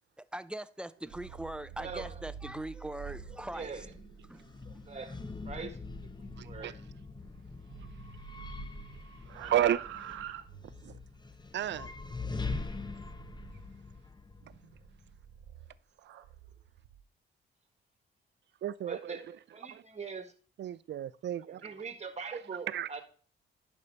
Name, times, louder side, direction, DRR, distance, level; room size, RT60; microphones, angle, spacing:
voice 1, 0.2-3.9 4.2-4.8, right 1 dB, 5° right, 0.5 m, -41 dB
sound 1, 0.9-7.4 7.7-11.1 12.5-13.7 14.4-17.0, right 10 dB, 90° right, 0.8 m, -48 dB
sound 2, 3.1-15.2, left 3 dB, 20° left, 0.9 m, -43 dB
voice 2, 3.5-3.8 4.6-5.8 6.2-6.8 9.3-9.8 18.8-19.2 19.5-20.3 21.4-23.0, right 5 dB, 30° right, 1.6 m, -42 dB
voice 3, 6.4-6.7 9.5-9.8 10.8-10.9 11.5-11.9 18.6-19.2 19.7-19.8 20.6-21.7 22.7-22.9, right 11 dB, 60° right, 0.5 m, -32 dB
10.5 x 5.4 x 3.4 m
cardioid pair, 70°, 21 cm